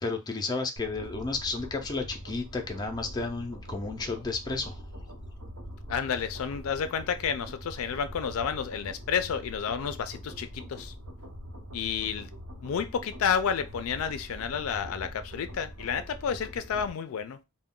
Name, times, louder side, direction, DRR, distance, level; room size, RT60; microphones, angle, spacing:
voice 1, 0.0-4.8, left 3 dB, 20° left, 0.4 m, -32 dB
sound 1, 0.8-16.9, equal, 75° right, 0.8 m, -43 dB
voice 2, 5.9-10.9 11.7-12.3 12.6-17.4, left 7 dB, 80° left, 0.4 m, -30 dB
2.3 x 2.1 x 3.6 m
head